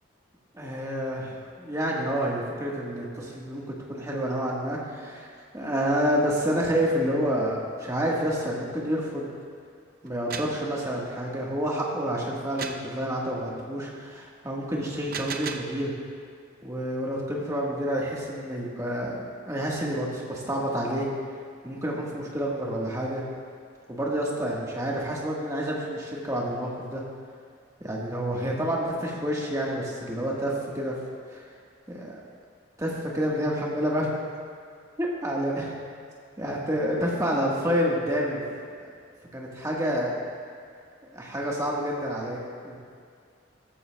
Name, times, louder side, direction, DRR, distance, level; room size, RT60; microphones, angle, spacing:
voice 1, 0.5-3.6 3.9-9.2 10.0-15.9 16.6-21.1 21.6-23.2 23.9-27.0 27.8-31.0 31.3-31.5 31.9-32.2 32.8-34.1 35.0-35.7 36.4-38.4 39.3-40.1 41.1-42.8, equal, 15° right, -3 dB, 1.4 m, -29 dB
sound 1, 10.1-10.6 12.6-12.9 14.9-15.8, right 5 dB, 45° right, 0.6 m, -35 dB
13.5 x 13.5 x 2.3 m, 2.2 s
head